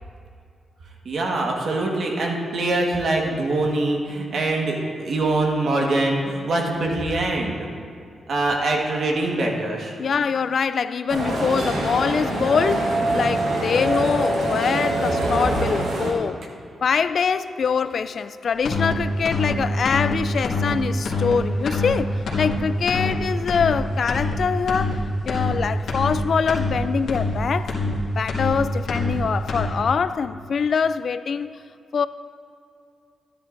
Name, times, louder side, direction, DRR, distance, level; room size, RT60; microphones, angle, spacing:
voice 1, 1.0-7.7 8.3-9.9, right 2 dB, 65° right, 1.5 m, -23 dB
voice 2, 10.0-16.4 16.8-27.7 28.1-31.6 31.9-32.1, left 6 dB, 60° left, 0.3 m, -24 dB
sound 1, 11.1-16.1, right 1 dB, 85° right, 1.5 m, -24 dB
sound 2, 18.6-18.9 19.2-19.5 19.8-20.1 20.4-20.7 21.0-21.3 21.7-21.9 22.3-22.5 22.9-23.1 23.5-23.7 24.1-24.3 24.7-24.9 25.3-25.5 25.9-26.2 26.5-26.7 27.1-27.3 27.7-27.9 28.3-28.6 28.9-29.1 29.5-29.7, left 3 dB, 80° left, 1.8 m, -25 dB
13.0 x 10.0 x 2.6 m
cardioid pair, 100°, 0 cm